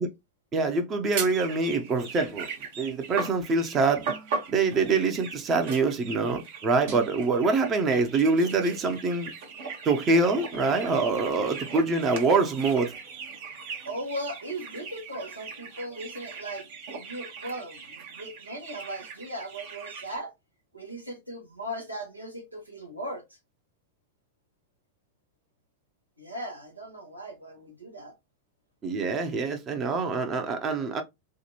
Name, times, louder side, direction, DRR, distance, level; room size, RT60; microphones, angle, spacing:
voice 1, 0.5-2.5 2.8-4.1 4.5-9.3 9.8-12.9 28.8-31.0, right 3 dB, 25° right, 0.8 m, -25 dB
sound 1, 1.1-20.2, right 5 dB, 55° right, 1.1 m, -39 dB
voice 2, 13.8-20.3 20.7-23.2 26.2-28.1, right 1 dB, 85° right, 1.1 m, -38 dB
5.0 x 2.4 x 2.8 m
figure-of-eight pair, 90°, 0 cm